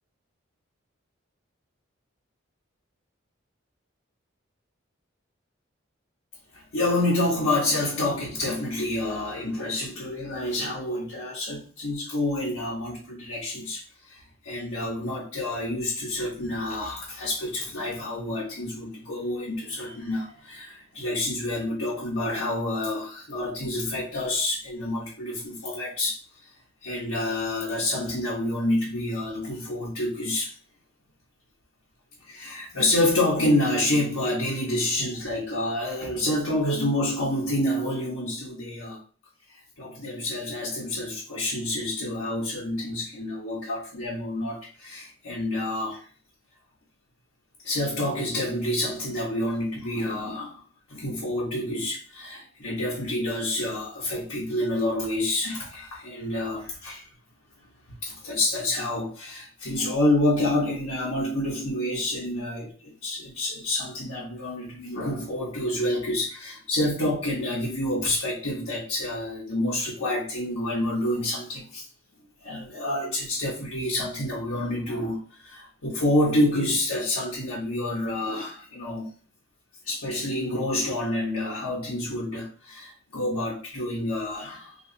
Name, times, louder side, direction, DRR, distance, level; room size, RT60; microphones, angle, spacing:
voice 1, 6.5-13.8 14.1-26.2 26.8-30.5 32.3-39.0 39.8-46.1 47.6-50.6 50.9-57.1 58.0-71.8 72.4-79.1 79.8-84.8, left 1 dB, 90° left, 1.1 m, -28 dB
2.7 x 2.7 x 3.8 m
head